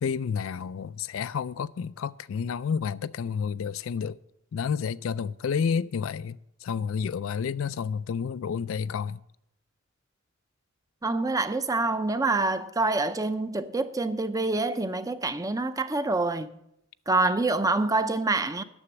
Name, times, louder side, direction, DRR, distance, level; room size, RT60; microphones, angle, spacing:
voice 1, 0.0-4.2 4.5-9.2, left 6 dB, 75° left, 0.4 m, -30 dB
voice 2, 11.0-16.5 17.1-18.6, right 3 dB, 15° right, 0.5 m, -26 dB
9.8 x 6.9 x 7.2 m
head